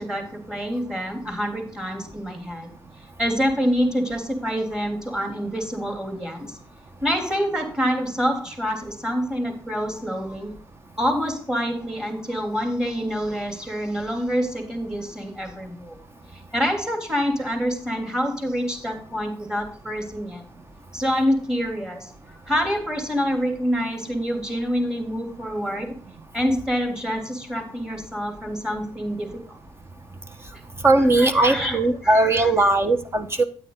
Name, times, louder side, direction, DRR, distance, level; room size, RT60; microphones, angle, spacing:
voice 1, 0.0-2.7 3.2-6.6 7.0-10.5 11.0-16.0 16.3-20.4 20.9-22.1 22.5-25.9 26.3-29.6 31.2-32.7, equal, 5° right, 6 dB, 3.2 m, -26 dB
voice 2, 30.8-33.4, right 2 dB, 25° right, 9 dB, 1.4 m, -19 dB
9.1 x 8.9 x 3.9 m, 0.41 s
cardioid pair, 90°, 10 cm